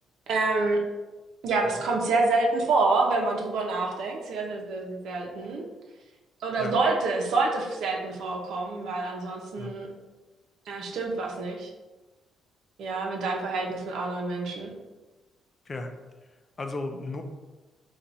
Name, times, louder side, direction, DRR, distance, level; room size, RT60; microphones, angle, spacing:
voice 1, 0.3-0.8 1.4-5.7 6.4-9.9 10.7-11.7 12.8-14.7, right 3 dB, 75° right, 1 dB, 0.8 m, -27 dB
voice 2, 16.6-17.2, left 2 dB, 35° left, 5 dB, 0.5 m, -35 dB
4.3 x 2.5 x 4.1 m, 1.2 s
cardioid pair, 90°, 0 cm